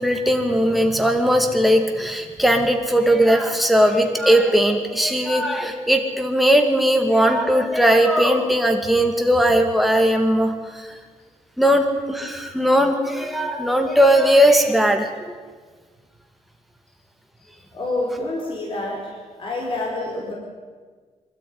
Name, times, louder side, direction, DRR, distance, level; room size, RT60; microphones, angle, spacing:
voice 1, 0.0-10.9 11.6-15.1, equal, ahead, 3 dB, 2.3 m, -18 dB
voice 2, 17.7-20.3, left 2 dB, 45° left, -2 dB, 4.6 m, -28 dB
24.5 x 13.5 x 9.7 m, 1.5 s
wide cardioid pair, 150°, 12 cm